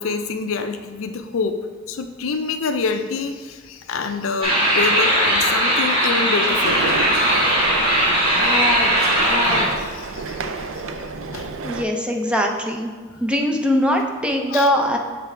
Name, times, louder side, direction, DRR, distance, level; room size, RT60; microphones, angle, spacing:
voice 1, 0.0-1.6 1.9-7.0 9.8-10.5 11.3-11.5 14.5-14.7, left 4 dB, 75° left, 8 dB, 0.4 m, -26 dB
sound 1, 4.4-9.7, equal, 25° right, 1.3 m, -18 dB
sound 2, 6.6-11.9, right 4 dB, 70° right, 0.4 m, -29 dB
voice 2, 11.6-12.9 13.2-15.0, equal, 5° right, 2 dB, 0.5 m, -21 dB
6.9 x 3.4 x 4.4 m, 1.5 s
head